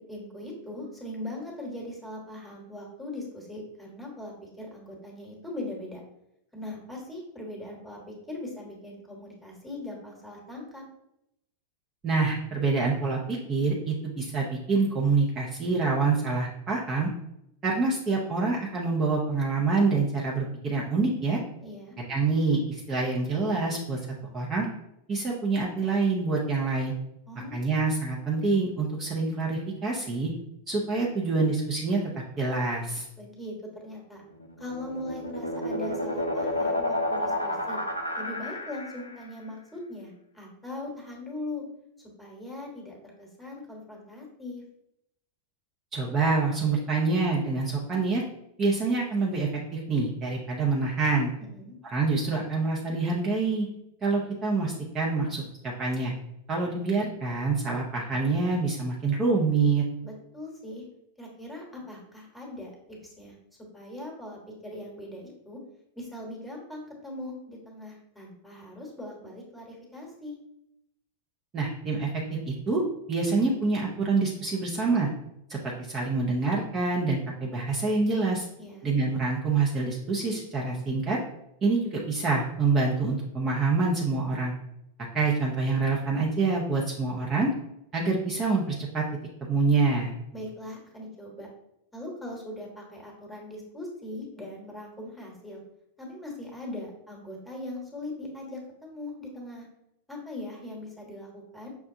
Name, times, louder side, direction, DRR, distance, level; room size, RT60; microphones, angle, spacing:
voice 1, 0.0-6.0 6.5-10.8 21.6-22.0 27.3-27.6 33.2-33.5 33.8-34.2 34.6-37.8 38.2-41.6 42.2-44.6 51.5-51.8 60.0-60.8 61.2-62.7 63.0-63.3 63.7-65.6 65.9-70.4 78.6-78.9 90.3-91.5 91.9-95.6 96.0-99.7 100.1-101.7, left 1 dB, 5° left, -1 dB, 1.3 m, -40 dB
voice 2, 12.0-17.1 17.6-21.4 22.1-24.0 24.3-24.7 25.1-26.9 27.5-30.3 30.7-32.0 32.4-33.0 45.9-48.2 48.6-51.3 51.9-53.7 54.0-56.1 56.5-59.8 71.5-72.8 73.1-75.1 75.5-78.5 78.8-81.2 81.6-84.5 85.1-87.5 87.9-89.0 89.5-90.1, right 3 dB, 25° right, -4 dB, 0.7 m, -26 dB
sound 1, 34.4-39.2, left 1 dB, 80° left, 0.5 m, -30 dB
5.8 x 2.2 x 2.7 m, 0.81 s
figure-of-eight pair, 90°, 0 cm